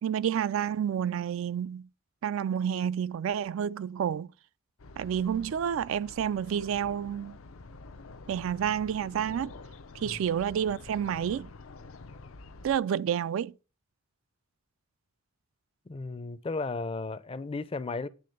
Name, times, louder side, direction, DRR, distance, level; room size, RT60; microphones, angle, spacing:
voice 1, 0.0-1.9 2.2-4.3 5.0-7.4 8.3-9.5 10.0-11.5 12.6-13.5, right 8 dB, 70° right, 0.3 m, -29 dB
sound 1, 4.8-12.8, left 3 dB, 85° left, 0.6 m, -48 dB
voice 2, 15.9-18.1, left 3 dB, 25° left, 0.5 m, -34 dB
8.6 x 3.8 x 6.5 m
head